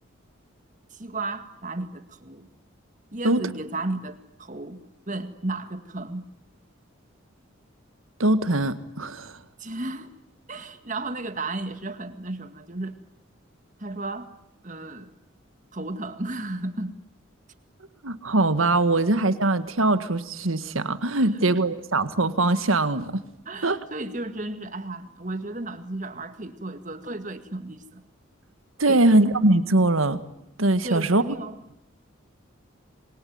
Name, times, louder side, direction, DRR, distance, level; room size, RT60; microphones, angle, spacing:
voice 1, 0.9-2.5 3.1-4.8 5.1-6.3 9.6-10.1 10.5-13.0 13.8-14.3 14.6-15.1 15.7-16.9 21.4-21.5 23.5-28.0 28.9-29.1 30.8-31.6, right 2 dB, 35° right, 1.9 m, -34 dB
voice 2, 8.2-9.4 18.0-23.1 23.6-23.8 28.8-30.2 30.6-31.2, right 2 dB, 85° right, 1.7 m, -22 dB
27.0 x 23.0 x 9.5 m
head